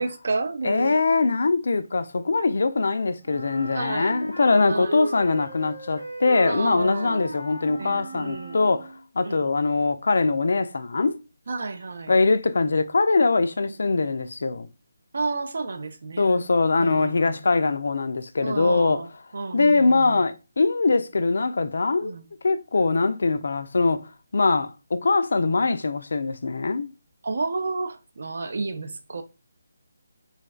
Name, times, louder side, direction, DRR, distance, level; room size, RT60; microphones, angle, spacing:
voice 1, 0.0-1.0 3.7-4.1 4.7-5.0 6.5-7.3 7.8-8.6 9.2-9.5 11.5-12.1 15.1-16.4 16.8-17.5 18.4-20.2 22.0-22.3 27.2-29.2, right 3 dB, 55° right, 0.4 m, -31 dB
voice 2, 0.6-8.9 9.2-11.2 12.1-14.7 16.2-19.0 19.5-22.2 22.4-26.9, left 3 dB, 60° left, 0.3 m, -22 dB
Wind instrument woodwind instrument, 3.2-9.0, right 1 dB, 80° right, 1.1 m, -35 dB
3.2 x 2.3 x 2.3 m
figure-of-eight pair, 150°, 0 cm